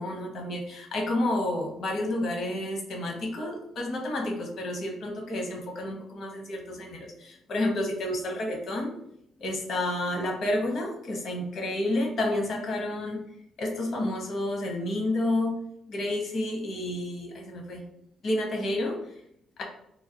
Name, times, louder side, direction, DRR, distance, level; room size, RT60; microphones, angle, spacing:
voice 1, 0.0-8.9 9.4-13.2 13.6-15.6 15.9-17.8 18.2-19.1, left 1 dB, 65° left, 1 dB, 0.9 m, -30 dB
3.1 x 2.2 x 2.8 m, 0.73 s
cardioid pair, 90°, 0 cm